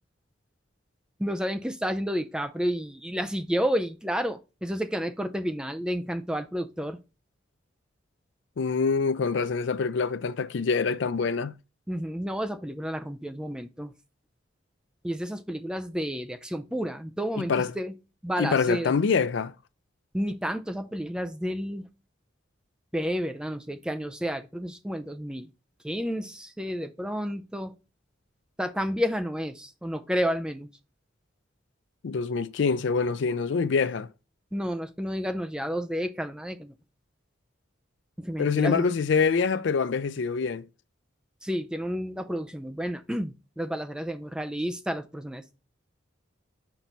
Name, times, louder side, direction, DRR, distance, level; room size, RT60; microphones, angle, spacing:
voice 1, 1.2-7.0 11.9-13.9 15.0-18.0 18.2-18.9 20.1-21.9 22.9-25.5 25.8-27.7 28.6-30.7 34.5-36.7 38.2-38.9 41.4-45.5, equal, 5° right, 0.4 m, -31 dB
voice 2, 8.6-11.5 17.4-17.7 18.4-19.5 32.0-34.1 38.4-40.7, left 5 dB, 65° left, 0.4 m, -25 dB
5.9 x 3.9 x 4.5 m
head